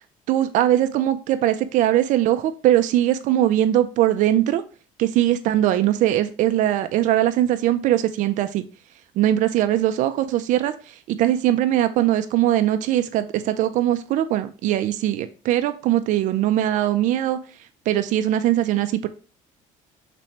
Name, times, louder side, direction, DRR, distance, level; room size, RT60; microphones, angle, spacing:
voice 1, 0.3-4.6 5.0-8.6 9.2-10.7 11.1-17.4 17.9-19.1, right 12 dB, 65° right, 10 dB, 0.4 m, -21 dB
3.4 x 3.1 x 2.8 m, 0.36 s
cardioid pair, 105°, 14 cm